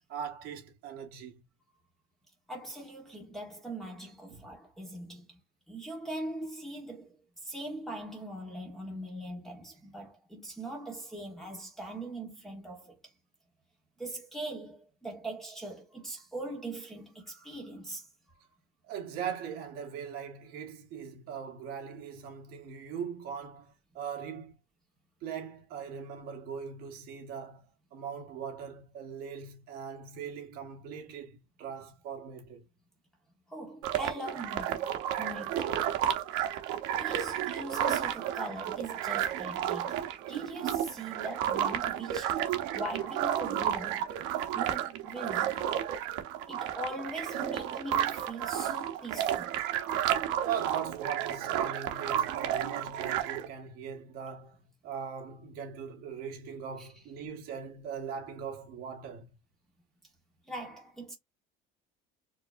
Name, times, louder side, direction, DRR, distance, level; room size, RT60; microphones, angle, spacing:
voice 1, 0.1-1.4 4.3-4.4 18.9-24.5 25.2-27.7 27.9-32.6 50.4-54.6 54.8-59.3, right 7 dB, 50° right, 1.4 m, -40 dB
voice 2, 2.5-5.4 5.7-7.1 7.4-13.0 14.0-18.1 33.5-34.8 35.2-35.7 37.0-40.0 40.3-42.4 42.7-44.1 44.5-45.6 46.5-49.6 56.8-56.9 60.5-61.1, right 1 dB, ahead, 1.2 m, -41 dB
sound 1, 33.8-53.5, right 11 dB, 65° right, 0.9 m, -32 dB
4.8 x 2.8 x 2.6 m
cardioid pair, 180°, 21 cm